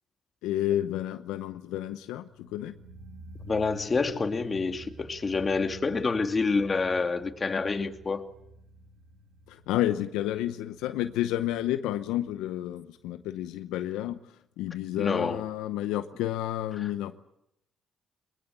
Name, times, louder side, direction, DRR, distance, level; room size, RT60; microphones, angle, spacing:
voice 1, 0.4-2.7 9.5-14.2 14.6-17.1, left 13 dB, 85° left, 0.8 m, -30 dB
sound 1, 2.2-13.2 13.4-13.5, left 1 dB, 90° right, 2.6 m, -50 dB
voice 2, 3.5-8.2 15.0-15.4 16.8-16.9, left 4 dB, 35° left, 2.5 m, -28 dB
21.5 x 21.0 x 9.1 m
supercardioid pair, 65°, 0 cm